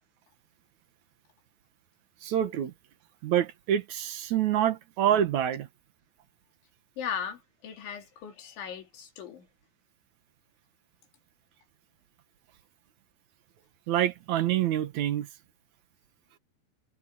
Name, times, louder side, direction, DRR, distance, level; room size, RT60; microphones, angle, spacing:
voice 1, 2.2-2.7 3.2-5.7 13.9-15.3, right 10 dB, 70° right, 1.8 m, -26 dB
voice 2, 7.0-9.5, left 7 dB, 90° left, 6.0 m, -37 dB
omnidirectional pair, 5.2 m